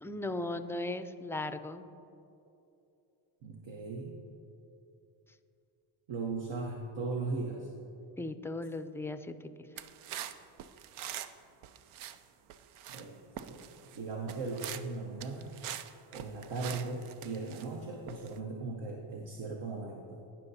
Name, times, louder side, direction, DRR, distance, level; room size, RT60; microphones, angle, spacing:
voice 1, 0.0-1.9 8.2-9.3, left 2 dB, 5° left, 10 dB, 0.3 m, -37 dB
voice 2, 3.4-4.2 6.1-7.7 12.9-13.2 13.5-15.6 16.1-20.2, right 3 dB, 65° right, 0 dB, 1.0 m, -38 dB
sound 1, 9.8-11.4 11.6-12.2 12.5-13.1 13.4-14.0 14.3-14.9 15.2-17.7 18.1-18.4, right 10 dB, 80° right, 0.5 m, -44 dB
17.0 x 5.7 x 2.7 m, 2.8 s
cardioid pair, 65°, 49 cm